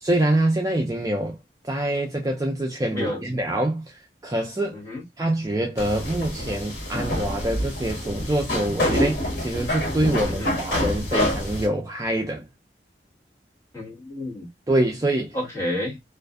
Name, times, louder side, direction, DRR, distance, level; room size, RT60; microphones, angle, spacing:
voice 1, 0.0-1.4 1.6-4.8 5.2-12.5 14.7-15.4, right 1 dB, 20° right, 0.4 m, -25 dB
voice 2, 2.9-3.2 4.7-5.0 10.3-10.6 13.7-14.5 15.3-16.0, left 1 dB, 15° left, 1.2 m, -30 dB
sound 1, 5.8-11.7, left 1 dB, 80° left, 1.1 m, -27 dB
2.4 x 2.4 x 2.2 m
head